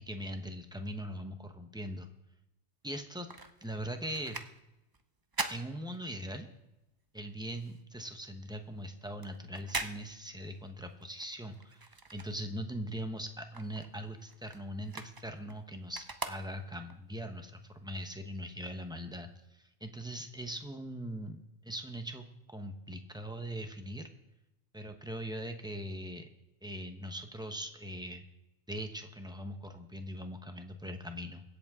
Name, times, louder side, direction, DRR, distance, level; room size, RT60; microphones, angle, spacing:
voice 1, 0.1-2.1 2.8-3.3 3.6-4.4 5.5-6.5 7.1-24.1 24.7-26.3 26.6-28.2 28.7-31.4, equal, 5° right, 6 dB, 0.9 m, -41 dB
sound 1, 2.8-6.6 6.9-12.9 13.2-17.0 17.5-17.6, right 3 dB, 25° right, 0.5 m, -43 dB
23.5 x 8.0 x 3.7 m, 0.94 s
omnidirectional pair, 1.1 m